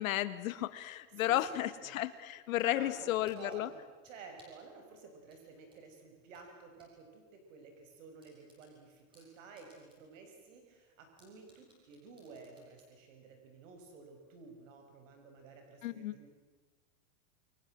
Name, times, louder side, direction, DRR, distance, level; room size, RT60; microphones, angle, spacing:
voice 1, 0.0-3.7 15.8-16.1, left 14 dB, 75° left, 13 dB, 1.9 m, -33 dB
voice 2, 1.2-1.9 2.6-16.3, right 4 dB, 65° right, 4 dB, 5.8 m, -53 dB
sound 1, 2.4-2.7 3.3-4.7 5.3-6.9 7.3-7.4 7.8-7.9 8.2-10.2 10.5-10.6 11.2-12.9, equal, 10° right, 7.4 m, -66 dB
29.0 x 24.0 x 7.7 m, 1.3 s
supercardioid pair, 175°, 41 cm